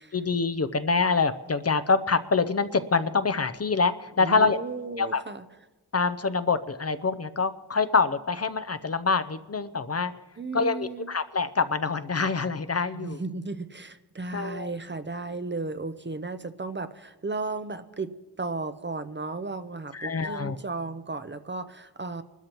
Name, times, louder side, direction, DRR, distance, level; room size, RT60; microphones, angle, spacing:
voice 1, 0.1-4.6 5.0-5.2 5.9-10.1 10.5-13.2 14.3-14.7 19.9-20.6, left 4 dB, 40° left, 12 dB, 0.6 m, -25 dB
voice 2, 4.2-5.4 10.4-11.1 12.9-22.2, right 3 dB, 30° right, 11 dB, 0.6 m, -35 dB
25.5 x 13.0 x 3.0 m, 1.2 s
cardioid pair, 55°, 39 cm